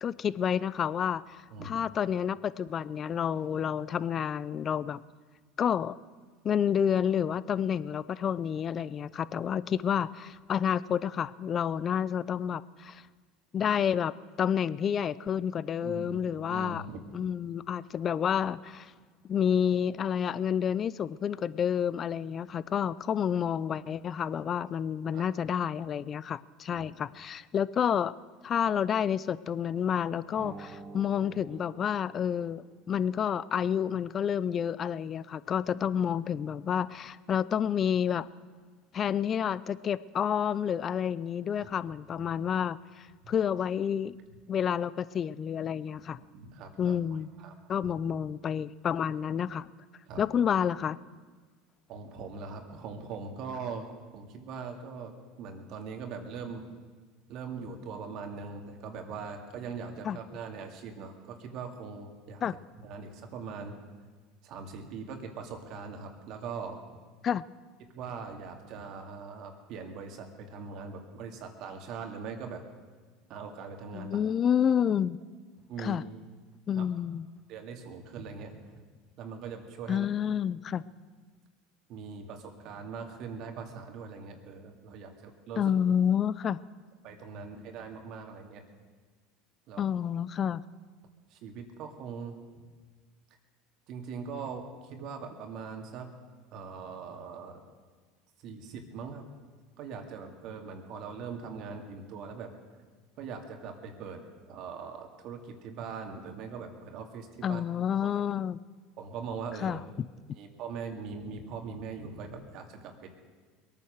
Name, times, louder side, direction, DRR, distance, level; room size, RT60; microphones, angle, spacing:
voice 1, 0.0-5.0 5.6-6.0 6.4-13.0 13.5-16.8 17.1-18.9 19.3-28.1 28.4-38.3 38.9-44.2 44.5-46.2 46.8-47.3 47.7-49.7 50.2-51.0 60.0-60.2 62.4-62.5 67.2-67.4 73.9-75.2 75.8-76.0 76.7-77.3 79.9-80.8 85.6-86.6 89.8-90.6 107.4-108.6 109.6-110.1, left 8 dB, 40° left, 18 dB, 0.5 m, -29 dB
voice 2, 15.8-16.2 16.5-17.0 25.1-25.2 26.7-26.8 41.6-41.7 42.2-42.3 43.2-43.3 46.2-46.9 47.4-47.6 50.1-50.2 51.9-55.1 55.4-56.6 57.3-62.4 62.8-63.8 64.4-66.8 67.9-72.6 73.3-74.2 75.7-76.0 76.8-76.9 77.5-78.5 78.8-78.9 79.2-80.1 81.9-85.7 87.0-88.6 89.7-89.8 91.3-92.4 93.9-96.1 96.5-97.6 98.4-99.2 99.8-102.5 103.2-107.6 108.0-108.1 109.0-109.8 110.3-113.1, right 5 dB, 60° right, 4 dB, 2.3 m, -41 dB
sound 1, 30.3-33.0, right 4 dB, 30° right, 1.1 m, -48 dB
22.0 x 9.2 x 6.6 m, 1.5 s
hypercardioid pair, 95°, 0 cm